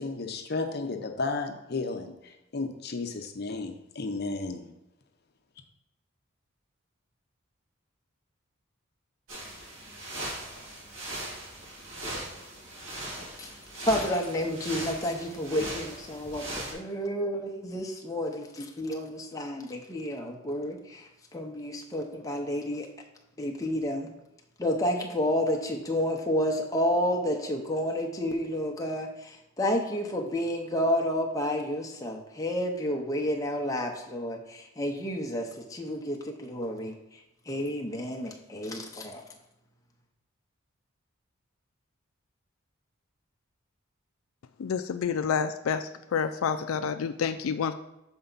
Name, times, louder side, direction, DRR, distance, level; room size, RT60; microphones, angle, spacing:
voice 1, 0.0-4.7, left 3 dB, 50° left, 6 dB, 0.7 m, -33 dB
sound 1, 9.3-16.7, right 1 dB, 70° right, 2.5 m, -39 dB
voice 2, 13.9-22.9 23.4-24.1 24.6-37.2 37.5-39.2, equal, 15° left, 1 dB, 0.7 m, -30 dB
voice 3, 44.6-45.8 46.1-47.7, left 6 dB, 85° left, 9 dB, 0.4 m, -28 dB
7.0 x 4.4 x 3.9 m, 0.91 s
head